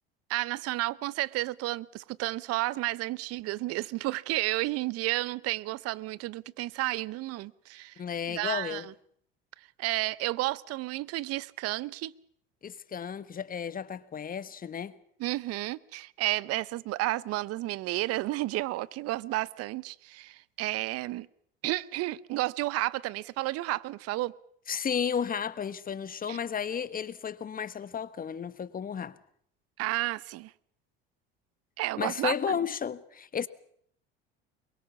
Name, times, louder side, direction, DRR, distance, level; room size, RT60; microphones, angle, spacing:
voice 1, 0.3-7.9 8.3-8.9 9.8-12.1 15.2-21.3 21.6-24.3 26.3-26.4 29.8-30.5 31.8-32.6, right 18 dB, 55° right, 0.9 m, -32 dB
voice 2, 8.0-8.9 12.6-14.9 24.7-29.1 32.0-33.5, left 7 dB, 30° left, 1.3 m, -33 dB
23.0 x 22.5 x 7.1 m
hypercardioid pair, 80°, 29 cm